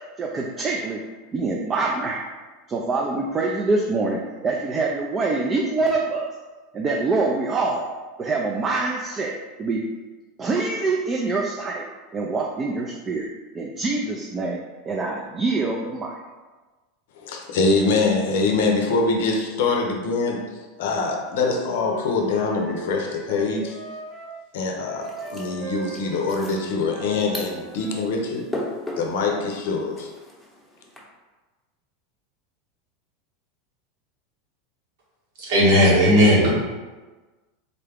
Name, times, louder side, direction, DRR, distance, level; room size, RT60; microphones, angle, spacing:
voice 1, 0.2-1.0 1.3-2.2 2.7-6.3 6.7-7.8 8.2-9.8 10.4-11.8 12.1-13.3 13.5-14.6 14.9-16.1, right 3 dB, 25° right, -1 dB, 0.4 m, -25 dB
voice 2, 17.2-20.4 20.8-23.8 24.5-28.5 29.0-30.1, left 3 dB, 75° left, 2 dB, 0.6 m, -24 dB
Wind instrument woodwind instrument, 21.2-24.3 24.8-28.1, right 2 dB, 40° right, 1.0 m, -38 dB
sound 1, 25.0-31.0, left 1 dB, 5° left, 0.8 m, -38 dB
voice 3, 35.4-36.5, equal, 75° right, -5 dB, 1.4 m, -16 dB
3.8 x 2.3 x 3.4 m, 1.2 s
hypercardioid pair, 110°, 0 cm